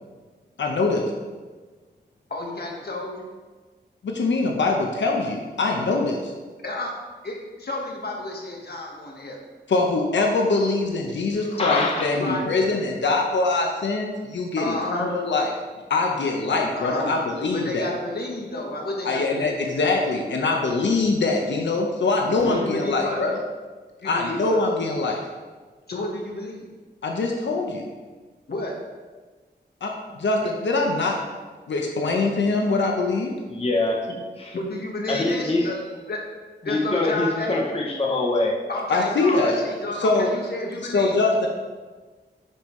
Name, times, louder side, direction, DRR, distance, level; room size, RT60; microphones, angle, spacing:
voice 1, 0.6-1.1 4.0-6.3 9.7-15.5 15.9-17.9 19.0-23.3 24.0-25.2 27.0-27.9 29.8-31.2 31.7-33.3 38.9-39.6 39.9-40.3 40.9-41.5, left 3 dB, 90° left, 1 dB, 0.9 m, -23 dB
voice 2, 2.3-3.3 6.6-6.9 7.2-9.4 12.2-12.5 14.6-15.1 16.7-17.2 17.5-19.6 22.4-23.2 24.0-24.6 25.9-26.7 28.5-28.7 34.5-35.8 36.1-36.2 36.6-37.6 38.7-41.2, left 2 dB, 60° left, 0 dB, 1.5 m, -31 dB
voice 3, 11.6-12.1 22.5-22.6 33.5-34.1 34.4-34.5 35.1-35.7 36.6-38.6 39.4-39.6, left 2 dB, 30° left, -1 dB, 0.9 m, -24 dB
9.8 x 5.4 x 3.2 m, 1.4 s
wide cardioid pair, 130°, 18 cm